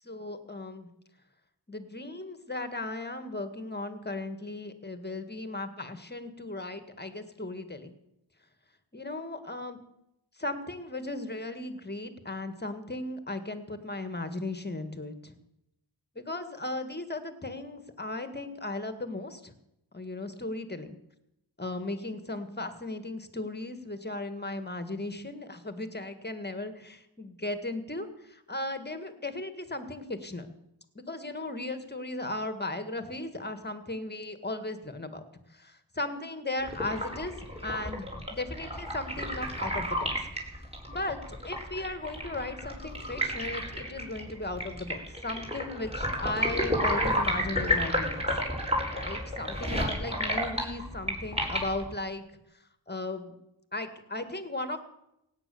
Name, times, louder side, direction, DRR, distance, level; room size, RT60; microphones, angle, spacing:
voice 1, 0.0-0.9 1.7-7.9 8.9-9.8 10.4-15.3 16.2-19.5 19.9-21.0 21.6-30.5 31.0-35.2 35.5-40.1 40.9-48.2 48.9-52.2 52.9-53.3 53.7-54.8, left 2 dB, 20° left, 10 dB, 1.8 m, -36 dB
sound 1, 36.6-51.9, equal, 10° right, 4.8 m, -32 dB
17.0 x 9.1 x 7.1 m, 0.84 s
cardioid pair, 50°, 48 cm